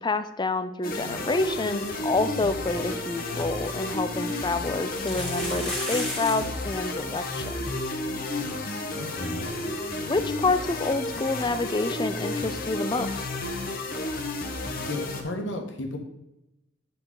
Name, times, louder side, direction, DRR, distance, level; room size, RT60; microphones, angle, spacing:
voice 1, 0.0-7.6 9.9-13.3, left 3 dB, 20° left, 11 dB, 0.5 m, -28 dB
sound 1, 0.8-15.2, left 2 dB, 45° left, 1.2 m, -32 dB
sound 2, 5.0-6.6 6.9-7.0 7.2-7.4 8.0-8.1 8.4-8.5 10.5-10.6, left 1 dB, 5° left, 2.3 m, -34 dB
voice 2, 8.9-9.6 14.7-16.0, left 2 dB, 65° left, 3 dB, 1.4 m, -34 dB
8.7 x 6.7 x 4.0 m, 0.92 s
head